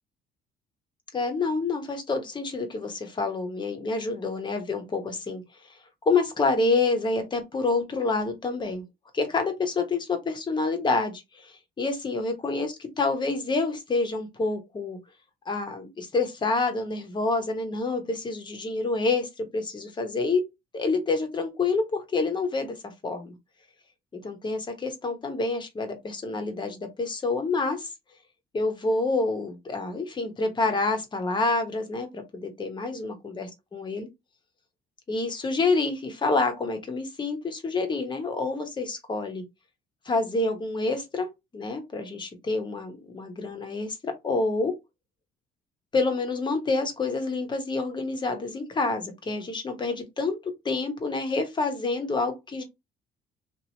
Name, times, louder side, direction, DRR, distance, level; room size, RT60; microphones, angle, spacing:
voice 1, 1.1-5.4 6.1-8.8 9.1-15.0 15.5-20.4 20.7-23.3 24.1-27.9 28.5-34.1 35.1-39.4 40.0-41.3 41.5-44.7 45.9-52.6, left 3 dB, 25° left, 1.0 m, -28 dB
2.9 x 2.6 x 2.9 m
cardioid pair, 110°, 17 cm